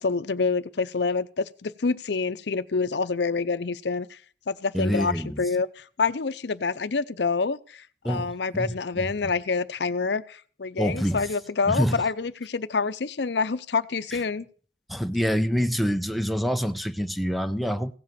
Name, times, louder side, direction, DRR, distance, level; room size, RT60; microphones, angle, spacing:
voice 1, 0.0-4.2 4.5-14.5, left 4 dB, 70° left, 0.6 m, -27 dB
voice 2, 4.7-5.4 8.0-9.1 10.8-11.3 11.7-12.0 14.1-14.2 14.9-17.9, equal, ahead, 0.6 m, -26 dB
16.5 x 7.7 x 6.8 m
head